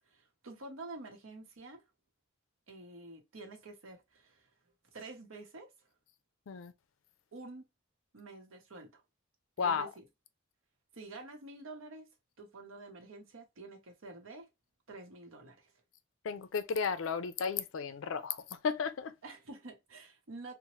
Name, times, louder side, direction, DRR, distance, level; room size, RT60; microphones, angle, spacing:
voice 1, 0.1-1.8 2.7-4.5 4.9-5.7 7.3-7.7 8.1-9.0 9.6-10.1 10.9-12.1 12.4-14.5 14.9-15.7 19.2-20.5, right 2 dB, 90° right, 0.8 m, -48 dB
voice 2, 9.6-9.9 16.2-19.1, left 6 dB, 75° left, 0.4 m, -34 dB
2.9 x 2.1 x 3.0 m
head